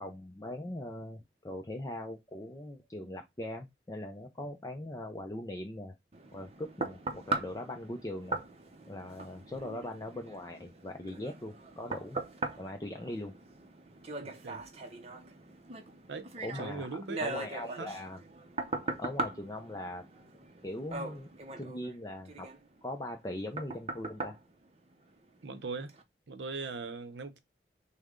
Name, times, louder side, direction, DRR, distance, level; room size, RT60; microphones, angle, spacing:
voice 1, 0.0-5.9 6.3-8.4 8.9-12.2 12.6-13.4 16.4-16.9 17.2-18.2 19.0-20.1 20.6-21.3 21.6-22.5 22.8-24.4, left 1 dB, 20° left, 0.4 m, -40 dB
sound 1, 6.1-25.4 25.9-26.0, right 2 dB, 35° right, 0.6 m, -40 dB
voice 2, 14.2-14.6 16.1-16.3 16.6-17.2 17.8-17.9 25.4-25.9 26.3-27.4, right 4 dB, 85° right, 0.7 m, -39 dB
6.4 x 2.2 x 3.6 m
head